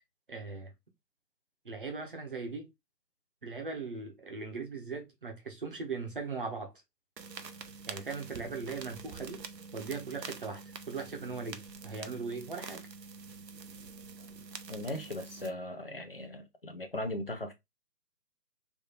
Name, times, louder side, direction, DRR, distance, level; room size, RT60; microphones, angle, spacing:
voice 1, 0.3-0.7 1.6-2.7 3.4-6.7 7.9-9.4 9.7-12.8, right 4 dB, 30° right, 0.9 m, -39 dB
sound 1, 7.2-15.5, right 5 dB, 80° right, 0.8 m, -46 dB
voice 2, 14.7-17.5, left 1 dB, 35° left, 0.5 m, -38 dB
3.5 x 2.7 x 4.0 m
figure-of-eight pair, 155°, 50 cm